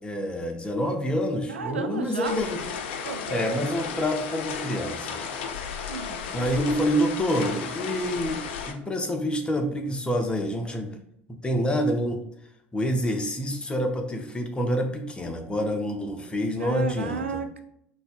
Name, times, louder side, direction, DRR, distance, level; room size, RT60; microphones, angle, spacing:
voice 1, 0.0-2.6 3.3-5.2 6.3-10.9 11.4-12.2 12.7-17.2, equal, 15° left, 4 dB, 0.7 m, -27 dB
voice 2, 1.5-2.4 3.0-3.5 5.9-6.7 16.6-17.6, right 5 dB, 80° right, 6 dB, 0.4 m, -34 dB
sound 1, 2.3-8.7, left 6 dB, 65° left, 0.4 m, -34 dB
5.5 x 2.7 x 2.3 m, 0.74 s
figure-of-eight pair, 70°, 6 cm